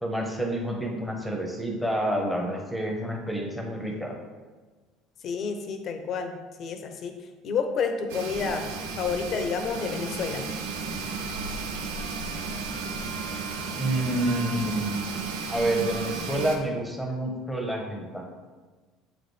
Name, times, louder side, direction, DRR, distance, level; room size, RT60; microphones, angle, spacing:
voice 1, 0.0-4.1 13.8-15.0 15.5-18.2, right 1 dB, ahead, 1 dB, 1.1 m, -28 dB
voice 2, 5.2-7.2 7.4-8.7 9.0-10.5, left 5 dB, 50° left, 6 dB, 0.7 m, -29 dB
sound 1, 8.1-16.6, right 4 dB, 75° right, 0.7 m, -33 dB
7.5 x 4.0 x 3.4 m, 1.3 s
hypercardioid pair, 75°, 0 cm